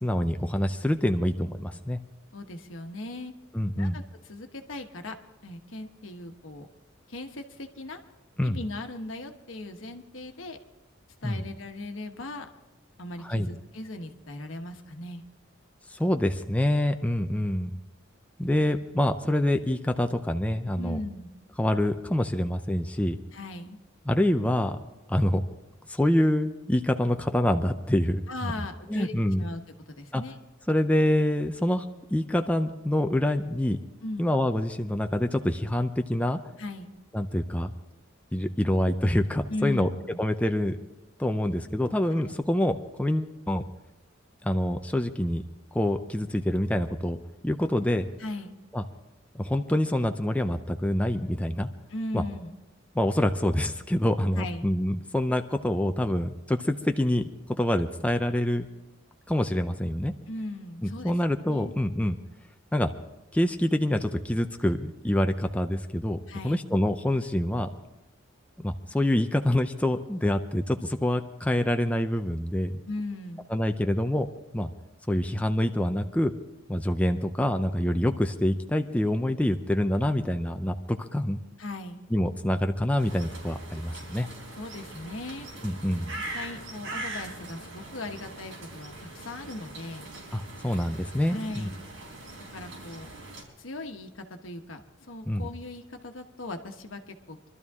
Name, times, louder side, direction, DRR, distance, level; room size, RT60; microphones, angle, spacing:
voice 1, 0.0-2.0 3.5-4.0 8.4-8.6 11.2-11.4 13.2-13.5 15.9-17.7 18.4-21.0 21.6-23.2 24.1-24.8 25.1-25.4 25.9-29.4 30.1-30.2 30.7-31.9 32.1-33.8 34.2-36.4 37.1-37.7 38.3-39.9 40.2-40.8 41.2-43.6 44.4-45.4 45.7-47.2 47.4-48.1 48.7-48.8 49.3-51.7 52.1-52.2 52.9-57.3 57.6-58.7 59.3-60.1 60.8-62.2 62.7-62.9 63.3-66.2 66.4-67.7 68.6-72.8 73.5-74.3 74.5-74.7 75.1-76.3 76.7-81.4 82.1-84.3 85.6-86.1 90.3-91.7 95.3-95.5, left 1 dB, 5° left, 5 dB, 0.5 m, -26 dB
voice 2, 2.3-3.3 3.7-5.2 5.4-6.7 7.1-8.0 8.4-10.6 11.2-12.5 13.0-15.2 20.8-21.3 23.3-23.8 28.3-30.4 34.0-34.3 36.6-36.9 39.5-40.2 42.3-42.4 48.2-48.5 51.9-52.6 54.3-54.7 60.3-61.1 61.5-61.8 66.3-66.7 72.8-73.5 81.6-82.0 84.6-85.5 86.2-90.1 91.3-91.8 92.5-93.1 93.6-97.5, left 2 dB, 75° left, 5 dB, 1.2 m, -38 dB
sound 1, 83.0-93.4, right 2 dB, 90° right, 3.9 m, -41 dB
23.5 x 12.5 x 3.6 m, 1.0 s
head